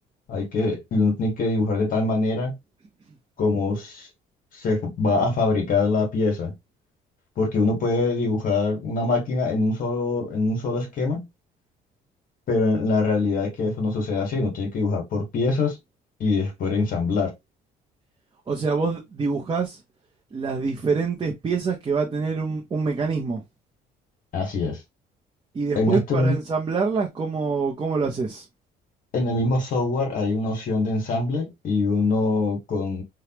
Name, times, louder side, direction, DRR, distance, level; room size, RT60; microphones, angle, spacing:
voice 1, 0.3-2.5 3.4-4.1 4.5-6.5 7.4-11.3 12.5-15.8 16.2-17.3 24.3-24.8 25.7-26.4 29.1-33.0, left 3 dB, 55° left, 1.5 m, -23 dB
voice 2, 18.5-19.8 20.3-23.4 25.5-28.4, right 4 dB, 25° right, 0.8 m, -25 dB
3.4 x 2.3 x 2.9 m
cardioid pair, 110°, 17 cm